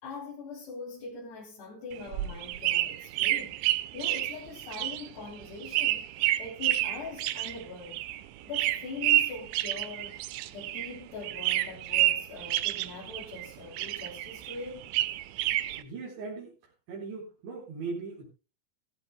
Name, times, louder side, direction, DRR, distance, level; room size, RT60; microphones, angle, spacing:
voice 1, 0.0-8.0 8.4-10.2 10.5-14.9, left 3 dB, 60° left, 5.3 m, -42 dB
sound 1, 1.9-11.0 11.2-13.5 13.7-15.8, right 15 dB, 85° right, 3.3 m, -29 dB
voice 2, 15.8-16.6 16.9-18.3, right 4 dB, 70° right, 6.7 m, -39 dB
18.0 x 16.0 x 2.2 m
omnidirectional pair, 5.4 m